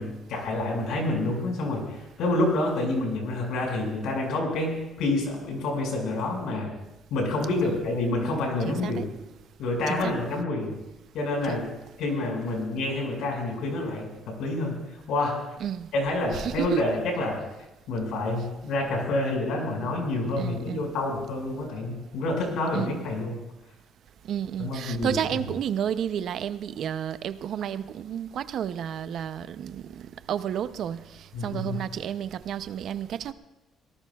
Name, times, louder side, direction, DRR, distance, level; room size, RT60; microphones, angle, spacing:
voice 1, 0.0-6.7 7.1-9.1 9.6-10.7 11.1-11.7 12.0-14.8 15.1-15.4 15.9-17.4 17.9-23.4 24.6-25.4 31.3-31.8, left 2 dB, 70° left, 1 dB, 5.3 m, -28 dB
voice 2, 8.7-9.0 9.9-10.1 11.5-11.6 15.6-15.9 16.3-16.8 20.4-20.9 22.7-23.1 24.3-31.0 31.4-33.3, right 9 dB, 50° right, 13 dB, 0.5 m, -31 dB
24.0 x 18.5 x 2.3 m, 0.99 s
cardioid pair, 180°, 0 cm